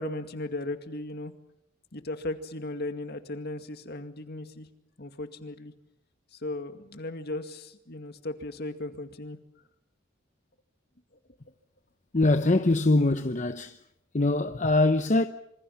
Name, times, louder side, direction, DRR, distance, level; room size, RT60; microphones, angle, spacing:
voice 1, 0.0-1.3 1.9-4.7 5.0-5.7 6.3-9.4, left 2 dB, 55° left, 2.2 m, -36 dB
voice 2, 12.1-13.8 14.1-15.3, left 2 dB, 40° left, 0.9 m, -23 dB
26.5 x 26.0 x 5.9 m
head